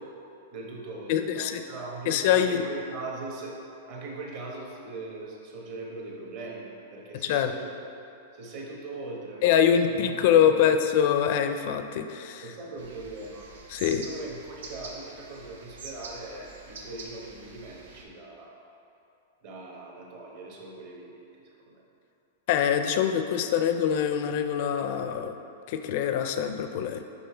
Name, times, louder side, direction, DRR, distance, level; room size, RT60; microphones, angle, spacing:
voice 1, 0.5-3.5 3.9-7.7 8.3-9.6 9.9-10.1 10.4-10.7 12.4-13.4 14.0-18.6 19.4-21.8, right 2 dB, 35° right, -2 dB, 1.1 m, -40 dB
voice 2, 1.1-1.6 2.1-2.6 7.2-7.5 9.4-12.4 13.7-14.1 22.5-25.3 25.7-27.0, left 9 dB, 40° left, 7 dB, 0.4 m, -24 dB
sound 1, 12.8-18.0, right 3 dB, 75° right, 0.9 m, -45 dB
6.0 x 5.5 x 4.3 m, 2.8 s
supercardioid pair, 175°, 0 cm